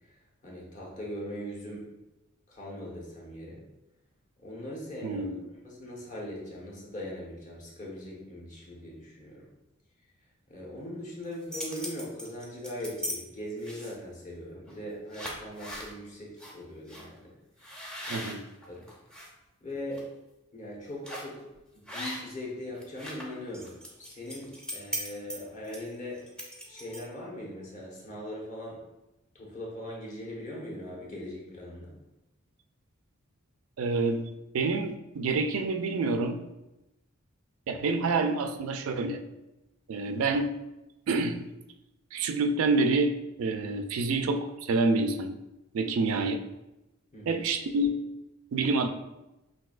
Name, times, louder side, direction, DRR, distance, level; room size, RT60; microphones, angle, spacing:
voice 1, 0.4-1.9 2.5-3.6 4.4-5.3 5.6-9.5 10.5-17.3 18.1-18.2 18.7-18.9 19.6-20.1 20.5-21.5 21.8-23.7 24.0-26.2 26.7-28.8 29.3-31.9 47.1-47.4, left 1 dB, 35° left, -4 dB, 1.1 m, -40 dB
voice 2, 5.0-5.4 18.1-18.4 33.8-34.3 34.5-36.4 37.7-39.2 39.9-40.5 41.1-41.4 42.1-45.4 45.7-46.4 47.3-48.0 48.5-48.9, right 3 dB, 75° right, 7 dB, 0.4 m, -27 dB
sound 1, 11.2-13.2 13.6-14.1 14.7-14.8 15.1-15.9 16.4-16.5 16.9-17.0 17.6-19.3 19.7-20.0 21.0-21.4 21.9-22.5 22.7-27.2, equal, 5° left, 0.6 m, -39 dB
5.8 x 2.7 x 2.4 m, 0.96 s
head